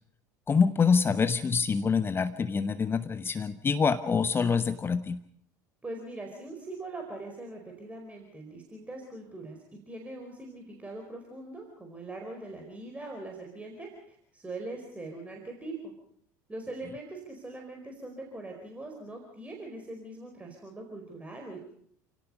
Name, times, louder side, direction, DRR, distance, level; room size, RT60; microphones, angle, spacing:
voice 1, 0.5-5.2, left 5 dB, 25° left, 12 dB, 0.9 m, -26 dB
voice 2, 5.8-15.9 16.5-21.6, right 2 dB, 15° right, 2 dB, 4.6 m, -42 dB
29.5 x 17.5 x 5.5 m, 0.67 s
figure-of-eight pair, 65°, 10 cm